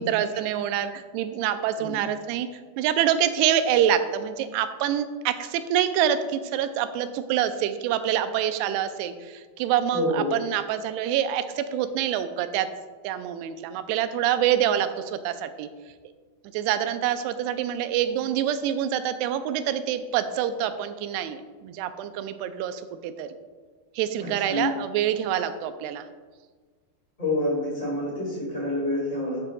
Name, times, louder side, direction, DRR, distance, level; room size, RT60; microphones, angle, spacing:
voice 1, 0.0-2.5 2.8-12.7 13.0-15.7 16.5-23.3 24.0-26.1, right 10 dB, 90° right, 10 dB, 2.6 m, -26 dB
voice 2, 9.9-10.3 24.2-24.7 27.2-29.4, left 1 dB, 20° left, -7 dB, 1.1 m, -27 dB
12.0 x 7.5 x 2.3 m, 1.4 s
omnidirectional pair, 4.6 m